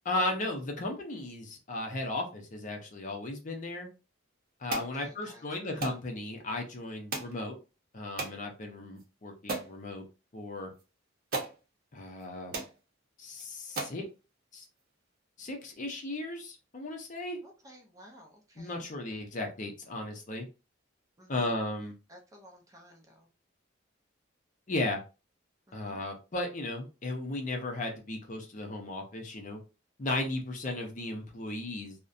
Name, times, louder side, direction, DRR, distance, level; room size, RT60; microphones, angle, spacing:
voice 1, 0.0-3.9 4.6-7.6 7.9-10.1 10.3-10.7 11.9-12.6 13.2-14.1 14.5-14.6 15.4-17.4 18.6-20.4 21.3-22.0 24.7-25.0 25.7-29.6 30.0-32.0, left 2 dB, 40° left, 2 dB, 0.6 m, -35 dB
voice 2, 4.7-5.6 17.4-18.8 21.2-21.5 22.1-23.3 25.7-26.0, equal, 15° right, 1 dB, 0.5 m, -53 dB
sound 1, 4.7-4.9 5.8-6.0 7.1-7.4 8.2-8.4 9.0-9.1 9.5-9.7 10.8-10.9 11.3-11.6 12.2-12.3 12.5-12.7 13.3-13.4 13.8-14.0, right 3 dB, 50° right, 0.7 m, -35 dB
2.5 x 2.1 x 2.5 m, 0.31 s
head